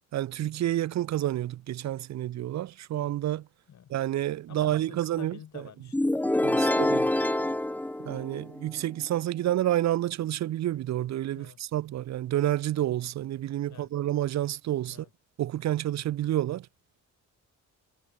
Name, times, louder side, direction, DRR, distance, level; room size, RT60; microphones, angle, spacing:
voice 1, 0.1-3.5 3.9-5.6 6.4-7.1 8.0-15.1 15.4-16.7, right 13 dB, 60° right, 0.6 m, -29 dB
voice 2, 4.5-6.2 6.5-7.9 11.3-11.6 13.7-13.9 14.9-15.1, left 9 dB, 60° left, 4.8 m, -50 dB
sound 1, 5.9-8.7, left 1 dB, 5° left, 0.7 m, -26 dB
cardioid pair, 105°, 32 cm